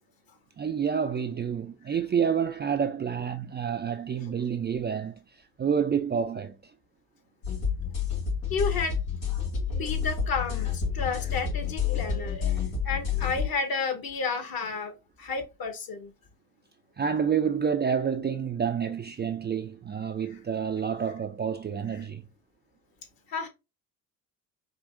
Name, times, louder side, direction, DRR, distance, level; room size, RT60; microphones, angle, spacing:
voice 1, 0.6-5.2 5.6-6.6 17.0-22.2, right 7 dB, 20° right, 0.4 m, -28 dB
sound 1, 7.4-13.5, left 7 dB, 90° left, 2.5 m, -29 dB
voice 2, 8.5-9.0 9.3-16.1 23.3-23.5, left 4 dB, 45° left, 1.3 m, -32 dB
4.9 x 2.7 x 2.6 m
hypercardioid pair, 60°, 48 cm